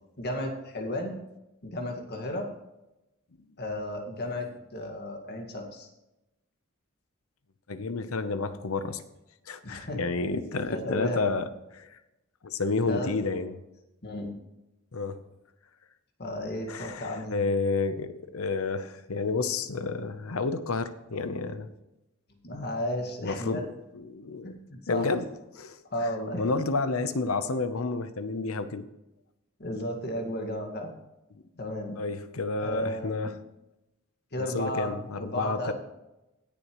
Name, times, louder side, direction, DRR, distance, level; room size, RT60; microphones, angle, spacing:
voice 1, 0.2-1.2 1.6-2.5 3.6-5.9 9.6-10.0 10.7-11.2 12.9-13.1 14.0-14.3 16.2-17.3 22.4-23.6 24.4-25.1 25.9-26.4 29.6-30.9 31.6-32.0 32.6-33.3 34.3-35.7, left 1 dB, 50° left, 3 dB, 1.9 m, -33 dB
voice 2, 7.7-9.0 9.5-11.4 11.7-12.0 12.4-13.5 14.9-15.2 16.7-21.7 23.2-23.7 23.9-24.5 24.9-25.3 25.5-25.8 26.4-28.8 32.0-33.3 34.4-35.7, left 3 dB, 75° left, 11 dB, 0.8 m, -30 dB
17.5 x 7.0 x 3.1 m, 0.94 s
head